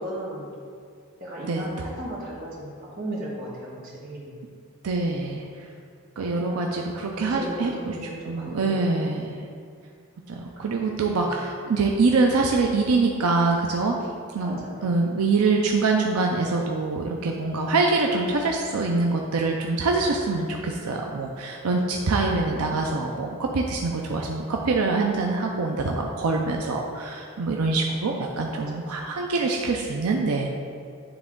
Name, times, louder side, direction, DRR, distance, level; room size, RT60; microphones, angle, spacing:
voice 1, 0.0-0.5 1.2-3.8 4.0-4.3 6.5-6.6 7.0-8.9 14.4-14.7 28.5-28.6, right 1 dB, 40° right, -6 dB, 1.7 m, -36 dB
voice 2, 1.4-2.0 4.8-5.7 6.2-9.4 10.3-13.9 14.3-30.5, right 3 dB, 85° right, 1 dB, 0.5 m, -25 dB
9.8 x 3.5 x 3.8 m, 2.2 s
head